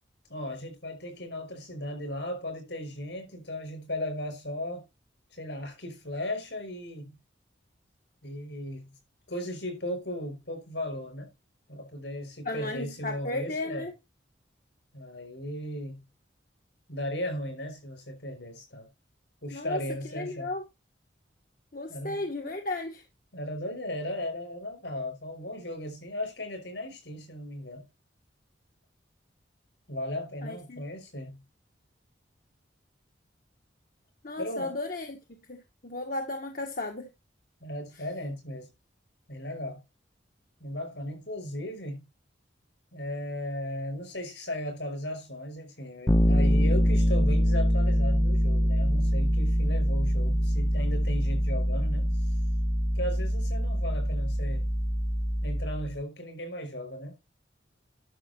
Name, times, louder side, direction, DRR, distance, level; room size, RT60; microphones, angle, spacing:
voice 1, 0.3-4.8 5.3-7.1 8.2-8.9 9.3-11.3 11.7-13.9 14.9-16.0 16.9-18.9 19.4-20.5 21.9-22.2 23.3-27.9 29.9-31.4 34.4-34.7 37.6-38.7 39.3-39.8 40.6-42.0 42.9-52.3 52.9-54.7 55.4-57.1, left 1 dB, 70° left, 5.5 m, -36 dB
voice 2, 12.4-13.9 19.5-19.8 20.1-20.6 21.7-23.0 30.4-30.8 34.2-37.1, left 2 dB, 45° left, 1.3 m, -35 dB
Bass guitar, 46.1-55.9, equal, 15° left, 0.8 m, -24 dB
11.0 x 6.5 x 4.2 m
head